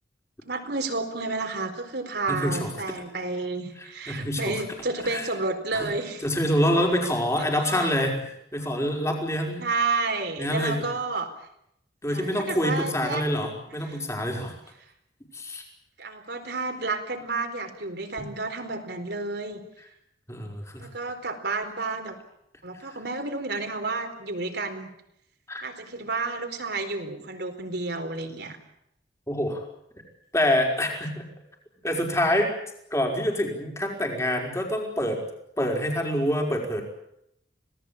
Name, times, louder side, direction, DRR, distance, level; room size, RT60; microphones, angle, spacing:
voice 1, 0.4-6.2 7.4-8.0 9.6-11.3 12.1-13.2 13.7-14.0 16.0-19.6 20.8-22.2 22.6-24.9 25.6-28.6, right 3 dB, 60° right, 5 dB, 4.2 m, -31 dB
voice 2, 2.3-2.7 3.8-4.6 5.1-5.3 5.7-5.9 6.2-8.2 8.5-9.6 10.4-10.8 12.0-14.5 15.3-15.6 20.3-20.9 22.7-23.0 25.5-25.7 29.3-29.6 30.3-31.3 31.8-32.5 32.9-35.2 35.6-36.8, equal, 15° left, 1 dB, 5.3 m, -26 dB
26.5 x 18.5 x 8.8 m, 0.78 s
head